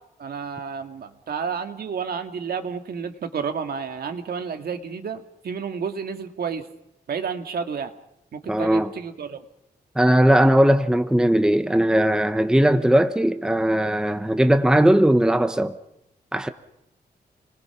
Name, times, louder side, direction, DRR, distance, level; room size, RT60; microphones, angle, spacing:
voice 1, 0.2-6.7 7.1-7.9 8.3-9.4, right 6 dB, 65° right, 2.0 m, -31 dB
voice 2, 8.5-8.9 10.0-15.7 16.3-16.5, right 1 dB, 5° right, 0.9 m, -18 dB
29.0 x 21.5 x 5.9 m
wide cardioid pair, 170°, 17 cm